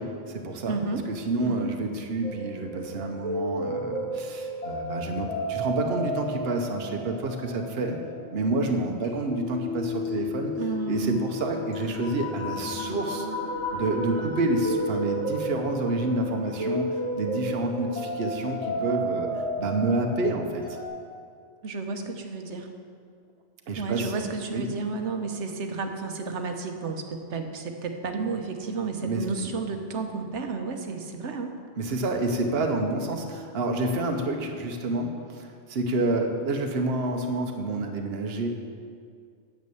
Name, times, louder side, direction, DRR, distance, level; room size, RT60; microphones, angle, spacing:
voice 1, 0.0-0.8 1.1-8.0 8.3-10.5 10.9-13.3 13.7-20.6 23.7-24.1 24.5-24.6 29.0-29.5 31.8-38.5, right 2 dB, 60° right, 3 dB, 1.1 m, -28 dB
voice 2, 0.7-1.0 1.4-1.7 10.5-11.2 21.6-22.7 23.8-31.5, right 4 dB, 75° right, 5 dB, 1.2 m, -32 dB
sound 1, 2.2-20.9, equal, 75° left, 2.5 m, -33 dB
9.6 x 7.4 x 6.9 m, 2.2 s
omnidirectional pair, 1.2 m